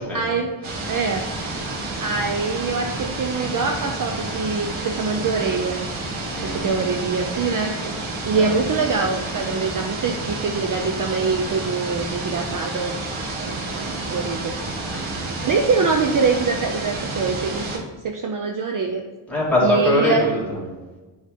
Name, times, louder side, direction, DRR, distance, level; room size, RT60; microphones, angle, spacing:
voice 1, 0.1-0.5 0.9-1.4 2.0-5.8 6.4-7.9 8.2-13.0 13.4-14.5 15.4-19.0 19.6-20.3, right 4 dB, 45° right, 4 dB, 0.5 m, -24 dB
sound 1, 0.6-17.8, right 2 dB, 85° right, 1.8 m, -30 dB
voice 2, 6.3-6.8 8.4-8.5 14.9-15.3 19.3-20.7, left 1 dB, 5° left, -7 dB, 2.5 m, -22 dB
10.0 x 4.0 x 5.0 m, 1.2 s
wide cardioid pair, 165°, 47 cm